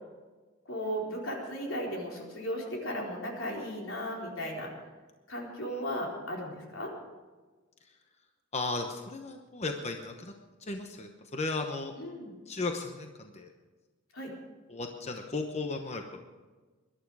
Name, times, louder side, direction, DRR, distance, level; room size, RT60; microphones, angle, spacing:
voice 1, 0.7-4.7 5.3-6.9 12.0-12.3 14.1-14.3, equal, 80° left, -1 dB, 4.1 m, -36 dB
voice 2, 8.5-10.3 10.6-11.9 12.5-13.5 14.7-16.2, left 3 dB, 35° left, 4 dB, 1.0 m, -35 dB
21.5 x 11.5 x 4.8 m, 1.3 s
head